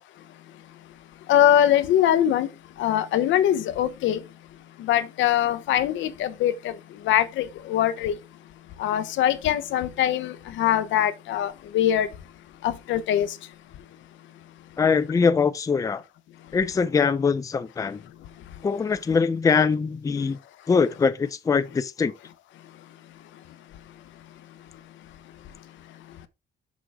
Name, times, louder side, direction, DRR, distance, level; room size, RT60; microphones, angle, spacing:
voice 1, 1.3-2.5 2.8-4.2 4.8-6.5 7.1-8.1 8.8-12.1 12.6-13.3, left 11 dB, 80° left, 0.9 m, -22 dB
voice 2, 14.8-16.0 16.5-18.0 18.6-20.4 20.7-22.1, left 5 dB, 15° left, 0.4 m, -22 dB
6.4 x 6.2 x 3.4 m
cardioid pair, 135°, 19 cm